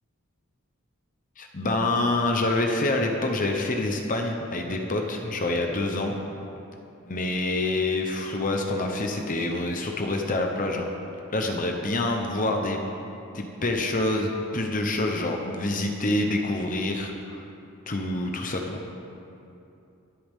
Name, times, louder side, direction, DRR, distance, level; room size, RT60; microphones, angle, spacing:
voice 1, 1.4-6.2 7.0-10.9 11.3-12.8 13.3-17.5 17.9-18.8, left 2 dB, 35° left, 2 dB, 0.9 m, -26 dB
23.5 x 8.5 x 3.7 m, 2.7 s
head